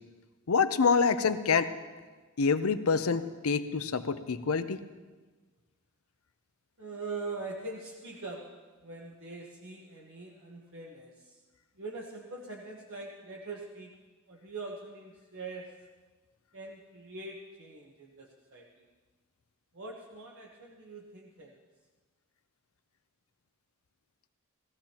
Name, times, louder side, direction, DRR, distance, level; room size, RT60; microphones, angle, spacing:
voice 1, 0.5-1.7 2.4-4.8, left 5 dB, 80° left, 11 dB, 0.7 m, -26 dB
voice 2, 6.8-8.4 8.8-11.4 11.8-13.9 14.3-15.7 16.5-18.9 19.7-21.6, right 3 dB, 60° right, -2 dB, 1.2 m, -43 dB
18.5 x 14.5 x 2.9 m, 1.3 s
head